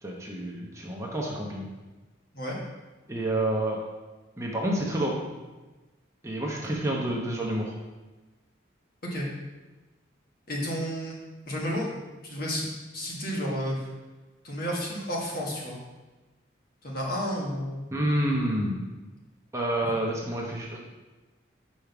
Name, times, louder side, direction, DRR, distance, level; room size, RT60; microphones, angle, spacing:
voice 1, 0.0-1.7 3.1-3.8 4.4-5.2 6.2-7.7 17.9-18.8 19.5-20.9, right 1 dB, 15° right, -2 dB, 0.9 m, -28 dB
voice 2, 10.5-11.2 11.5-13.9 14.4-15.8 16.8-17.9, equal, 50° left, -3 dB, 1.6 m, -31 dB
5.3 x 5.1 x 5.9 m, 1.2 s
head